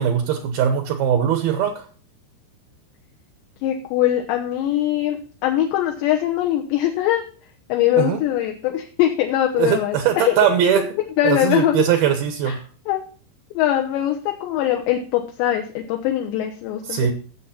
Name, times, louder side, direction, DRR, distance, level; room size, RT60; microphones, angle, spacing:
voice 1, 0.0-1.9 8.0-8.2 9.6-10.9 11.2-12.6 16.9-17.1, right 9 dB, 75° right, 7 dB, 2.3 m, -20 dB
voice 2, 3.6-7.2 7.7-10.5 10.8-10.9 11.2-11.8 12.5-12.6 12.9-13.0 13.6-17.1, left 12 dB, 75° left, 3 dB, 2.9 m, -22 dB
16.5 x 7.2 x 4.3 m, 0.40 s
omnidirectional pair, 5.8 m